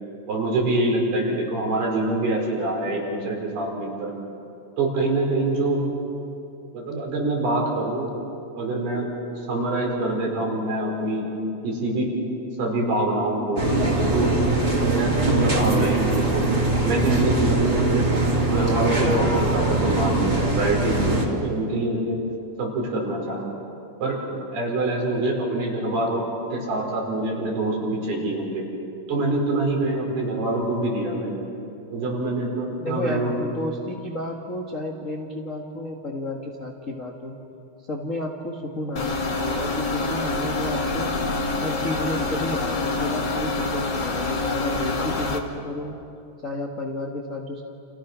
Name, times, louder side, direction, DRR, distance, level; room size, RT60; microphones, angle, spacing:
voice 1, 0.3-4.1 4.8-5.8 6.7-8.1 8.6-9.1 9.5-11.3 11.6-12.1 12.6-13.7 14.1-14.4 14.8-16.4 16.8-18.1 18.4-22.2 22.6-23.4 24.0-24.2 24.5-28.7 29.1-31.4 31.9-33.3, right 2 dB, 75° right, -1 dB, 6.8 m, -25 dB
sound 1, 13.6-21.3, right 2 dB, 30° right, 3.5 m, -22 dB
voice 2, 32.8-37.3 37.9-41.2 41.6-45.9 46.4-47.6, left 1 dB, 65° left, 0 dB, 0.7 m, -31 dB
sound 2, 39.0-45.4, left 3 dB, 45° left, 1.5 m, -26 dB
30.0 x 28.5 x 6.2 m, 2.8 s
omnidirectional pair, 4.5 m